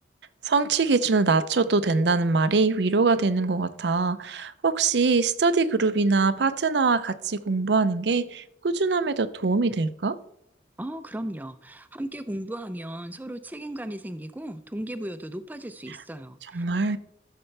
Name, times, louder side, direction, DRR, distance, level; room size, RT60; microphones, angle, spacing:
voice 1, 0.4-10.2 16.5-17.0, right 4 dB, 80° right, 0.6 m, -23 dB
voice 2, 10.8-16.6, right 1 dB, 10° right, 0.5 m, -36 dB
13.5 x 6.7 x 3.3 m
head